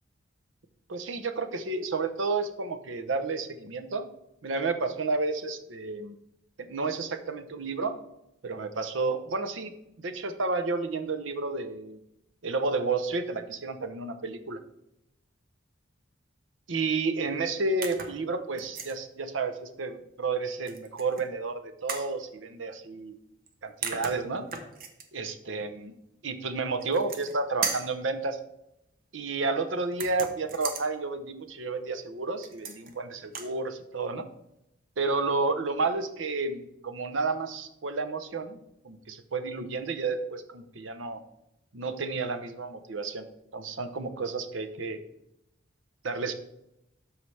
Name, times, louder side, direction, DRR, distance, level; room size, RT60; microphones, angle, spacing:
voice 1, 0.9-4.1 4.4-6.2 6.6-8.0 8.4-12.0 12.4-14.6 16.7-23.1 23.6-24.5 25.1-25.9 26.2-28.4 29.1-34.3 35.0-38.6 38.8-41.2 41.7-43.2 43.5-45.0 46.0-46.3, right 3 dB, 75° right, 9 dB, 0.8 m, -31 dB
sound 1, 17.8-18.2 18.6-19.0 20.7-21.2 21.9-22.1 23.5-23.6 23.8-25.1 26.8-27.4 27.6-28.0 29.9-30.9 32.4-32.9 33.2-33.5, right 5 dB, 45° right, 0.9 m, -36 dB
12.5 x 4.8 x 3.3 m, 0.83 s
head